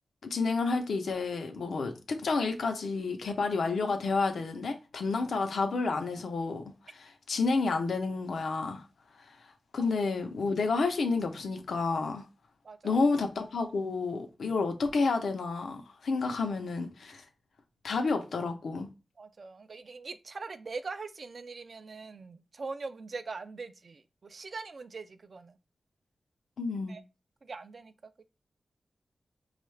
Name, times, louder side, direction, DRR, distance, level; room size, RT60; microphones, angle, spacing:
voice 1, 0.2-8.9 9.3-9.5 9.7-12.3 12.8-17.2 17.8-18.9 26.6-27.0, left 4 dB, 90° left, 0.7 m, -30 dB
voice 2, 12.6-13.0 19.2-25.6 26.9-27.0 27.4-27.9, right 4 dB, 55° right, 0.4 m, -42 dB
5.3 x 2.4 x 3.2 m
wide cardioid pair, 110°, 0 cm